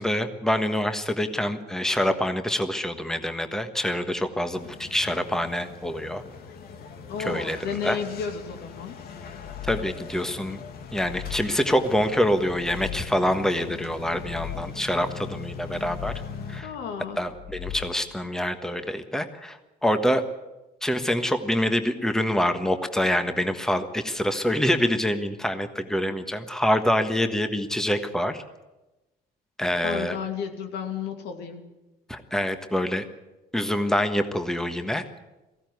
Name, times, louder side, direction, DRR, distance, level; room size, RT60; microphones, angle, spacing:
voice 1, 0.0-6.2 7.2-8.0 9.6-10.6 10.9-16.1 16.5-16.7 17.2-20.2 20.8-28.4 29.6-30.2 32.1-33.0 33.5-35.0, equal, 5° left, 8 dB, 1.4 m, -26 dB
sound 1, 4.5-16.6, left 5 dB, 65° left, 2.2 m, -41 dB
voice 2, 7.1-9.0 16.6-17.2 29.8-31.6, left 7 dB, 85° left, 5 dB, 2.6 m, -32 dB
sound 2, 9.2-10.3 10.8-11.9 12.4-13.4 14.0-15.1 15.5-16.6 17.2-18.3, left 14 dB, 35° left, 0.7 m, -40 dB
18.5 x 15.5 x 9.4 m, 1.0 s
cardioid pair, 110°, 17 cm